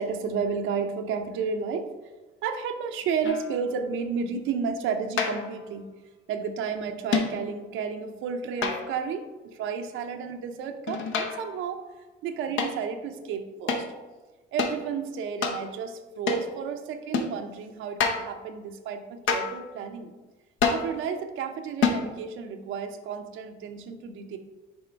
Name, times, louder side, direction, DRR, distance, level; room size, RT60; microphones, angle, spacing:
voice 1, 0.0-1.9 2.4-5.9 6.3-11.8 12.2-13.9 14.5-20.1 20.7-24.4, right 6 dB, 90° right, 6 dB, 0.6 m, -32 dB
sound 1, 3.2-3.6 5.2-5.6 7.1-7.5 8.6-9.1 10.9-11.6 12.6-12.8 13.7-13.9 14.6-14.8 15.4-15.6 16.3-16.5 17.1-17.4 18.0-18.3 19.3-19.6 20.6-20.9 21.8-22.1, left 5 dB, 75° left, 0.8 m, -27 dB
6.3 x 3.7 x 4.4 m, 1.2 s
cardioid pair, 90°, 20 cm